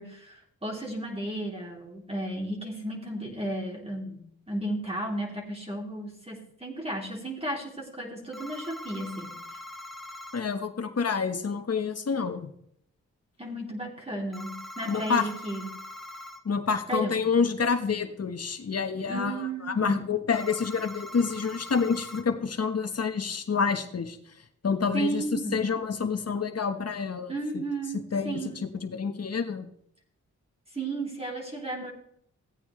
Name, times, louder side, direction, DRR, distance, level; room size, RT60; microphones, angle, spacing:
voice 1, 0.0-4.2 4.5-9.4 13.4-15.7 16.9-17.2 19.1-20.1 24.9-25.7 27.3-28.0 28.2-28.6 30.7-31.9, right 1 dB, 20° right, -2 dB, 3.5 m, -34 dB
sound 1, 8.3-10.4 14.3-16.4 20.3-22.2, left 1 dB, ahead, 1.3 m, -42 dB
voice 2, 10.3-12.5 14.9-15.2 16.4-24.2 24.6-25.2 25.5-27.6 28.1-29.7, left 5 dB, 50° left, 7 dB, 1.4 m, -28 dB
15.5 x 8.6 x 3.3 m, 0.70 s
supercardioid pair, 45°, 32 cm